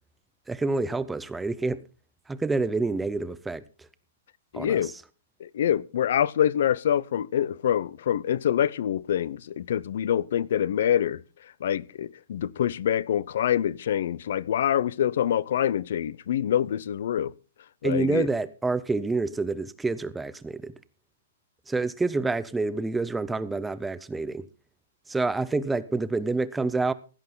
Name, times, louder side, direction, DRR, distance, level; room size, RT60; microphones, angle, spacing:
voice 1, 0.5-1.8 2.3-3.6 4.5-5.0 17.8-20.7 21.7-24.5 25.1-26.9, right 3 dB, 5° right, 0.5 m, -28 dB
voice 2, 4.5-4.9 5.4-11.2 11.6-17.3 17.8-18.3, left 10 dB, 55° left, 0.6 m, -25 dB
16.5 x 11.5 x 3.8 m
hypercardioid pair, 175°, 0 cm